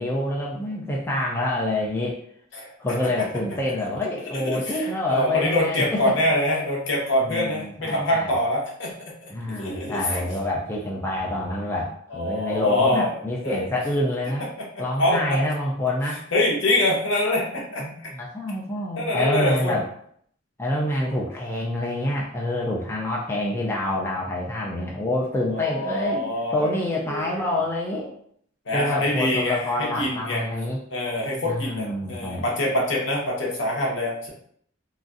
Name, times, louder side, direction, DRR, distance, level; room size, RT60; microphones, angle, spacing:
voice 1, 0.0-2.2 2.8-6.1 7.2-8.3 9.3-14.5 14.8-16.2 17.8-19.8 20.6-28.1 28.7-30.8 31.5-32.4, left 1 dB, 10° left, -3 dB, 0.3 m, -27 dB
voice 2, 4.3-8.9 9.6-10.3 12.1-13.1 13.4-13.7 14.7-15.2 16.1-18.1 19.0-19.8 20.9-21.2 25.5-26.7 27.1-27.5 28.7-30.4 30.9-34.3, left 1 dB, 65° left, -2 dB, 0.8 m, -25 dB
3.0 x 2.6 x 2.4 m, 0.65 s
head